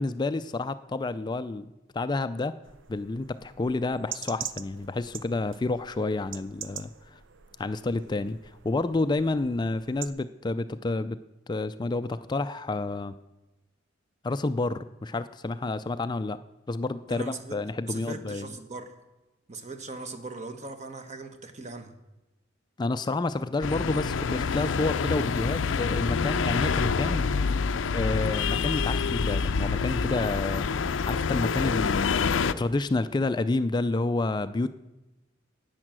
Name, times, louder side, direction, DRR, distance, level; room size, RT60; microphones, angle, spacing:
voice 1, 0.0-2.6 2.9-7.2 7.6-11.2 11.5-13.1 14.2-16.4 16.7-18.5 22.8-27.3 27.9-30.7 31.1-32.1 32.4-34.8, left 2 dB, 25° left, 0.3 m, -29 dB
sound 1, 2.6-10.1, right 9 dB, 80° right, 0.6 m, -44 dB
voice 2, 17.1-17.6 17.9-19.0 19.5-21.9, right 3 dB, 40° right, 1.1 m, -39 dB
sound 2, 23.6-32.5, left 5 dB, 85° left, 0.5 m, -27 dB
11.0 x 9.0 x 7.5 m
head